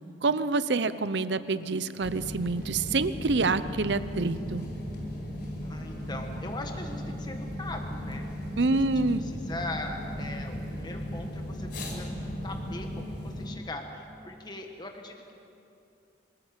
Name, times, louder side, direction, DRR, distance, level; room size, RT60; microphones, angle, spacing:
voice 1, 0.2-4.7 8.6-9.2, right 3 dB, 70° right, 14 dB, 0.7 m, -27 dB
sound 1, 2.0-13.5, equal, 60° left, 5.3 m, -36 dB
voice 2, 5.6-8.3 8.7-8.9 9.2-12.1 12.4-15.3, left 2 dB, 25° left, 3 dB, 1.4 m, -40 dB
25.5 x 14.0 x 8.3 m, 2.7 s
head